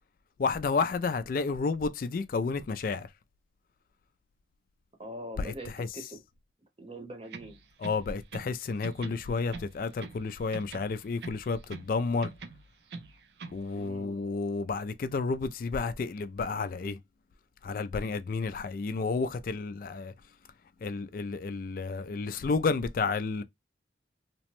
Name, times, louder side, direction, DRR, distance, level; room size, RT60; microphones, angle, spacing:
voice 1, 0.4-3.1 5.4-5.5 5.8-5.9 7.8-12.3 13.5-17.0 17.6-20.1 20.8-23.4, left 4 dB, 50° left, 0.3 m, -31 dB
voice 2, 5.0-6.2 6.8-7.6 13.7-14.3, right 1 dB, 30° right, 0.8 m, -43 dB
sound 1, 7.2-8.6 8.8-10.3 10.5-11.9 12.2-13.6, right 4 dB, 65° right, 0.4 m, -44 dB
2.9 x 2.1 x 2.9 m
head